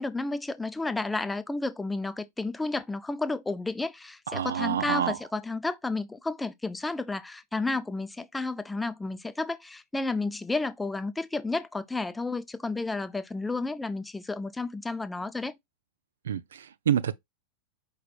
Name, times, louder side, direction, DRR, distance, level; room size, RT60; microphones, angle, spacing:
voice 1, 0.0-15.5, left 3 dB, 10° left, 0.5 m, -32 dB
voice 2, 4.3-5.2 16.3-17.2, right 9 dB, 65° right, 0.3 m, -28 dB
5.0 x 4.3 x 2.2 m
figure-of-eight pair, 90°, 0 cm